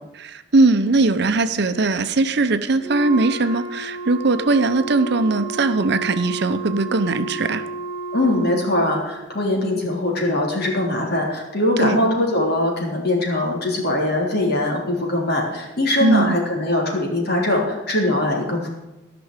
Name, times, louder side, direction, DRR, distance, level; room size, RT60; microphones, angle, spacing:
voice 1, 0.2-7.6 11.8-12.0 16.0-16.4, right 3 dB, 60° right, 10 dB, 0.8 m, -19 dB
Wind instrument woodwind instrument, 2.8-8.9, right 3 dB, 15° right, 2.0 m, -31 dB
voice 2, 8.1-18.7, left 1 dB, 55° left, -1 dB, 3.5 m, -21 dB
14.5 x 6.1 x 8.1 m, 1.0 s
head